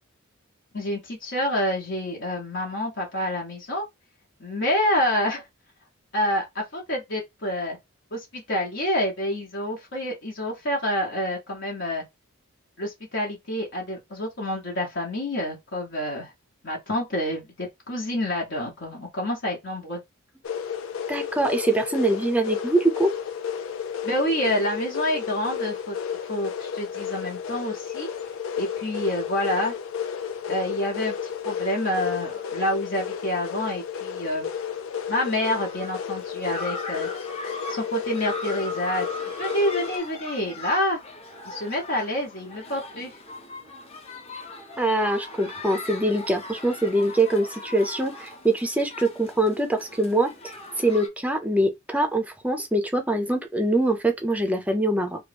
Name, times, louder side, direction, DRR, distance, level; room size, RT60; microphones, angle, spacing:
voice 1, 0.7-3.8 4.4-5.5 6.1-7.8 8.1-12.0 12.8-16.3 16.6-20.0 24.0-28.1 28.6-29.8 30.5-34.5 35.1-37.1 37.7-39.1 39.4-41.0 41.4-43.2, left 1 dB, 60° left, 1.0 m, -28 dB
sound 1, 20.4-40.0, left 7 dB, 80° left, 0.5 m, -32 dB
voice 2, 21.1-23.1 44.8-55.2, right 1 dB, 5° right, 0.5 m, -24 dB
sound 2, 34.9-51.1, left 2 dB, 30° left, 0.8 m, -39 dB
3.0 x 2.3 x 3.4 m
head